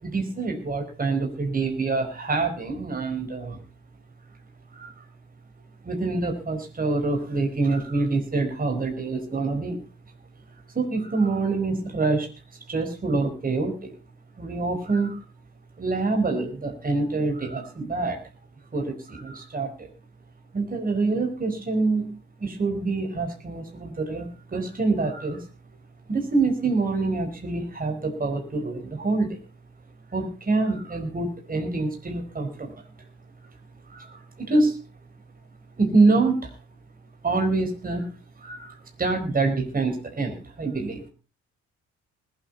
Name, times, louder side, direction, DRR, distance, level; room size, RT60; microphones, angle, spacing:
voice 1, 0.0-3.6 4.7-5.0 5.8-9.8 10.7-12.3 12.7-14.0 14.4-15.2 15.8-18.2 18.7-19.9 20.5-25.4 26.1-29.4 30.1-32.7 33.9-34.8 35.8-36.5 37.2-38.1 38.4-41.1, right 3 dB, 30° right, 4 dB, 4.6 m, -26 dB
20.0 x 8.8 x 5.4 m, 0.34 s
cardioid pair, 90°, 30 cm